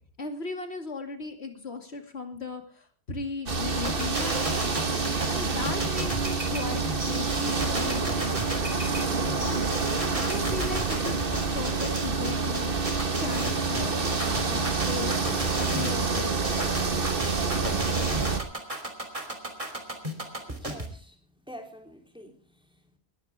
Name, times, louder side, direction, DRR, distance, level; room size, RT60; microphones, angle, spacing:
voice 1, 0.2-4.7 5.3-8.7 9.4-12.7 13.1-15.1 15.6-16.8, left 3 dB, 85° left, 5 dB, 2.9 m, -37 dB
sound 1, 3.5-18.4, right 4 dB, 60° right, 1.8 m, -28 dB
sound 2, 3.8-20.9, right 1 dB, 30° right, 3.3 m, -34 dB
voice 2, 20.5-23.0, equal, 5° right, 3 dB, 3.5 m, -47 dB
20.0 x 14.5 x 3.6 m, 0.42 s
omnidirectional pair, 1.1 m